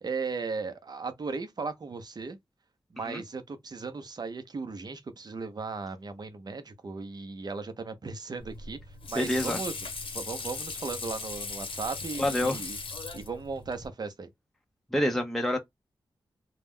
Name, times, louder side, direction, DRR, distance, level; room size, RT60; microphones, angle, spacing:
voice 1, 0.0-2.4 2.9-8.8 9.1-9.7 10.1-12.8 13.1-14.3, right 4 dB, 50° right, 0.6 m, -36 dB
Water / Sink (filling or washing), 8.4-13.9, left 4 dB, 75° left, 0.8 m, -38 dB
voice 2, 9.2-9.6 12.2-12.6 14.9-15.6, left 1 dB, 5° left, 0.5 m, -27 dB
2.3 x 2.1 x 3.4 m
cardioid pair, 65°, 9 cm